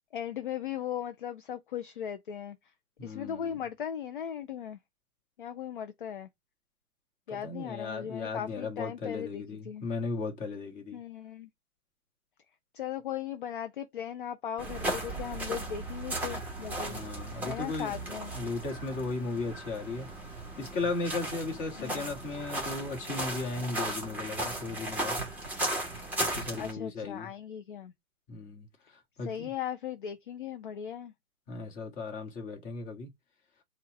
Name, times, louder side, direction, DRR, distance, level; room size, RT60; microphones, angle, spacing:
voice 1, 0.1-2.6 3.0-4.8 5.4-6.3 7.3-9.8 10.9-11.5 12.7-17.0 17.5-18.3 21.8-22.1 26.6-27.9 29.2-31.1, left 9 dB, 35° left, 0.5 m, -38 dB
voice 2, 3.0-3.6 7.3-11.0 16.8-17.9 18.3-20.1 20.6-25.2 26.2-27.3 28.3-28.7 29.2-29.5 31.5-33.1, left 3 dB, 15° left, 1.5 m, -36 dB
sound 1, 14.6-26.7, right 1 dB, 5° right, 1.1 m, -36 dB
4.4 x 2.4 x 4.3 m
figure-of-eight pair, 125°, 44 cm